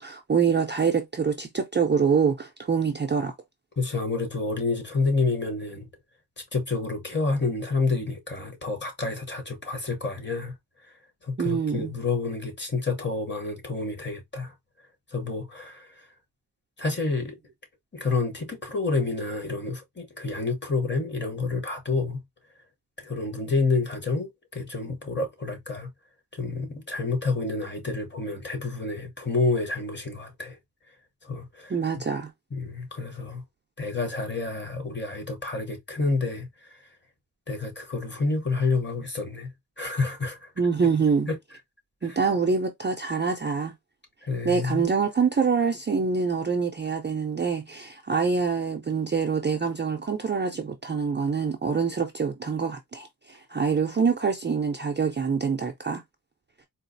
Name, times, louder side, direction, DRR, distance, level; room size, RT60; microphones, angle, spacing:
voice 1, 0.0-3.3 11.4-11.9 31.7-32.3 40.6-41.3 42.0-43.7 44.4-56.0, right 5 dB, 30° right, 0.4 m, -25 dB
voice 2, 3.8-5.9 6.5-10.5 11.2-14.5 15.1-16.1 16.8-17.4 17.9-22.2 23.0-25.9 26.3-30.6 31.2-31.7 32.5-33.4 33.8-36.8 37.5-39.5 39.8-40.5 41.3-41.4 42.0-42.2 44.2-44.9, left 3 dB, 30° left, 0.8 m, -29 dB
3.9 x 2.3 x 2.5 m
wide cardioid pair, 170°, 39 cm